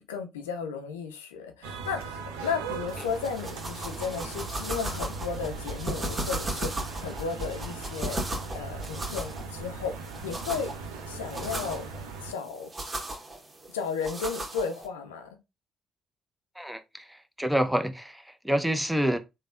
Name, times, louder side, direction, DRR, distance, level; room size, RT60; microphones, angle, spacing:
voice 1, 0.1-6.7 7.0-8.2 8.5-9.9 10.2-10.7 11.1-11.9 12.2-12.7 13.7-15.4, left 5 dB, 85° left, 0.4 m, -34 dB
sound 1, 1.6-12.3, right 4 dB, 80° right, 0.5 m, -39 dB
sound 2, 2.9-14.9, right 1 dB, 30° right, 1.1 m, -37 dB
voice 2, 17.4-19.2, right 1 dB, 5° right, 0.6 m, -27 dB
3.3 x 2.1 x 2.5 m
hypercardioid pair, 45°, 0 cm